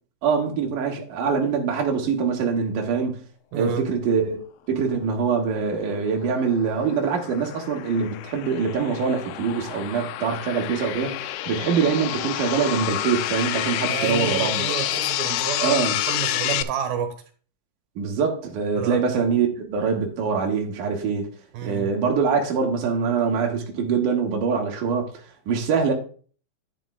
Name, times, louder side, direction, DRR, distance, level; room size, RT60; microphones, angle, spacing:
voice 1, 0.2-3.2 3.5-4.4 4.7-14.6 15.6-16.0 18.0-21.3 21.6-25.1 25.5-25.9, right 5 dB, 70° right, 3.0 m, -24 dB
voice 2, 3.5-3.9 13.9-15.8 16.1-17.2 18.8-19.0 21.5-21.9, right 9 dB, 85° right, 3.2 m, -29 dB
sound 1, 5.8-16.6, left 14 dB, 80° left, 1.8 m, -29 dB
11.0 x 10.5 x 2.3 m
omnidirectional pair, 4.0 m